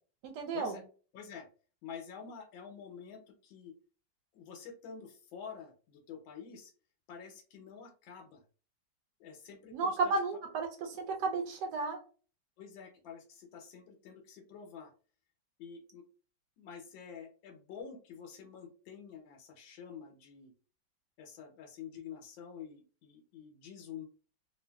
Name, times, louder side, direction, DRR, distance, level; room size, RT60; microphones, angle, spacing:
voice 1, 0.2-0.8 9.7-12.0, right 3 dB, 70° right, 4 dB, 1.1 m, -33 dB
voice 2, 1.1-1.5 1.8-3.7 4.3-6.7 7.1-8.4 9.2-10.1 12.6-14.9 15.6-16.0 16.6-20.5 21.2-24.0, left 7 dB, 85° left, 3 dB, 1.4 m, -48 dB
3.0 x 2.5 x 2.2 m, 0.38 s
omnidirectional pair, 2.0 m